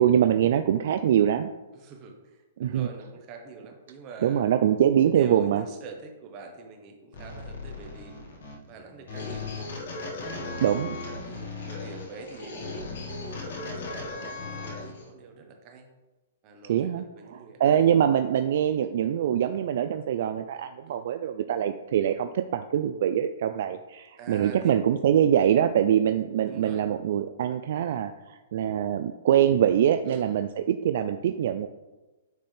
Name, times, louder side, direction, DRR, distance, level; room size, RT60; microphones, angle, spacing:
voice 1, 0.0-1.5 2.6-2.9 4.2-5.6 10.6-11.1 16.7-17.0 17.3-31.7, right 10 dB, 55° right, 8 dB, 0.3 m, -24 dB
voice 2, 1.7-4.5 5.0-8.2 8.7-9.7 11.3-12.7 13.1-15.9 16.4-18.0 20.8-21.0 24.2-24.8 26.4-26.8 30.0-30.5, right 4 dB, 30° right, 3 dB, 1.0 m, -45 dB
sound 1, 7.1-15.1, left 3 dB, 70° left, 1.5 m, -37 dB
9.3 x 4.2 x 3.4 m, 1.1 s
hypercardioid pair, 160°, 0 cm